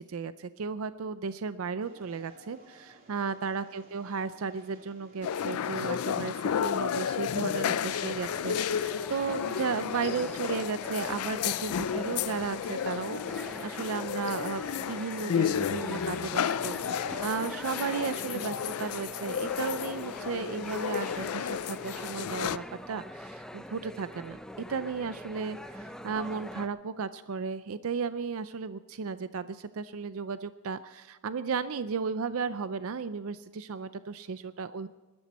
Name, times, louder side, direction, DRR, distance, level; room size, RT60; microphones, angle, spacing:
voice 1, 0.0-24.4 24.7-34.9, right 5 dB, 65° right, 13 dB, 0.5 m, -35 dB
sound 1, 1.8-7.1, right 1 dB, 40° right, 2.6 m, -57 dB
sound 2, 5.2-22.6, left 8 dB, 80° left, 0.4 m, -32 dB
sound 3, 7.8-26.7, equal, 5° left, 0.6 m, -44 dB
21.0 x 12.5 x 4.2 m, 1.2 s
head